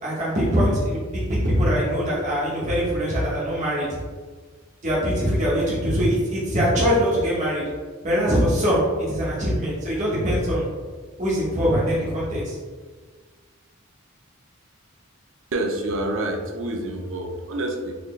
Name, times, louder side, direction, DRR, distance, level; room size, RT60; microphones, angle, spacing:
voice 1, 0.0-3.9 4.8-7.6 8.0-10.7 11.2-12.6, equal, 35° right, -7 dB, 0.9 m, -22 dB
voice 2, 15.5-18.0, right 1 dB, 60° right, 4 dB, 0.5 m, -27 dB
4.1 x 2.6 x 3.1 m, 1.5 s
head